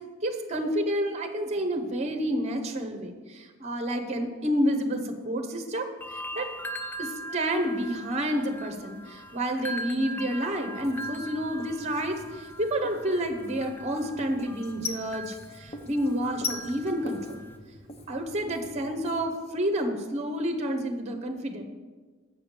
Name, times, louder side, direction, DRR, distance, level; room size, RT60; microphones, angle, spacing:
voice 1, 0.2-5.9 6.4-6.5 7.0-17.4 18.1-21.6, equal, 30° right, 6 dB, 0.8 m, -29 dB
sound 1, 6.0-17.6, right 1 dB, 10° left, 0.3 m, -41 dB
Writing, 10.8-19.3, left 3 dB, 30° left, 0.7 m, -41 dB
7.4 x 4.9 x 6.6 m, 1.4 s
head